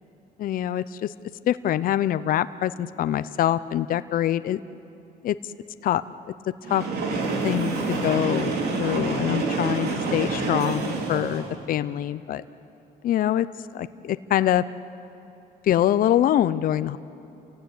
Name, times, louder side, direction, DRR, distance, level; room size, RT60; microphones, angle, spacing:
voice 1, 0.4-1.1 1.5-4.6 5.2-5.3 5.8-6.0 6.7-6.8 7.4-12.4 13.0-13.5 13.7-14.6 15.6-17.0, left 12 dB, 55° left, 14 dB, 0.7 m, -24 dB
Train, 6.6-11.6, right 3 dB, 70° right, 3.4 m, -27 dB
29.0 x 16.0 x 9.8 m, 2.9 s
cardioid pair, 110°, 17 cm